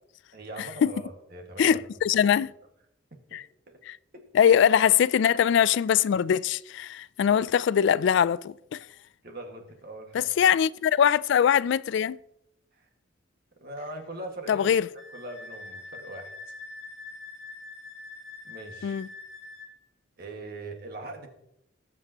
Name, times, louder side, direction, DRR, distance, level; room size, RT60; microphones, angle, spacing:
voice 1, 0.3-1.8 2.1-2.3 3.3-3.8 4.1-4.6 9.2-10.3 12.7-12.9 13.6-14.7 15.1-16.4 18.4-19.0 20.2-21.3, right 1 dB, 55° right, 1.8 m, -41 dB
voice 2, 1.6-2.5 3.3-3.4 3.9-4.0 4.3-8.8 10.1-12.2 14.5-14.9 18.8-19.1, left 8 dB, 65° left, 0.3 m, -22 dB
Wind instrument woodwind instrument, 15.0-19.7, left 3 dB, 75° right, 3.0 m, -44 dB
20.0 x 7.6 x 3.0 m
head